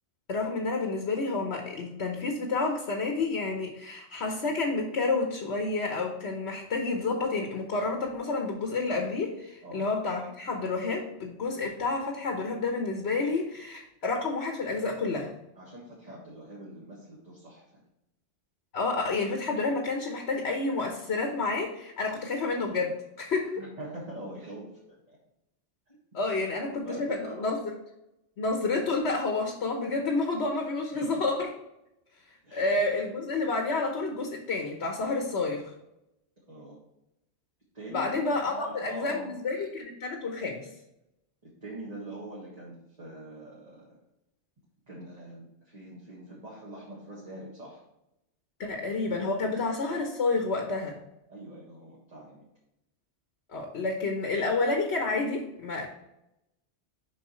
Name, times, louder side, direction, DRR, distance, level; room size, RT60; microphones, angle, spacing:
voice 1, 0.3-15.3 18.7-23.6 26.1-27.6 28.4-31.5 32.5-35.7 37.9-40.7 48.6-51.0 53.5-55.9, left 3 dB, 65° left, 2 dB, 1.3 m, -29 dB
voice 2, 15.6-17.8 23.6-25.2 25.9-26.2 26.5-27.5 30.6-31.2 32.4-32.7 36.5-36.8 37.7-38.2 38.5-39.4 41.4-44.0 44.9-47.8 51.3-52.4, right 1 dB, 35° right, -6 dB, 1.8 m, -44 dB
7.2 x 5.3 x 3.1 m, 0.85 s
omnidirectional pair, 1.2 m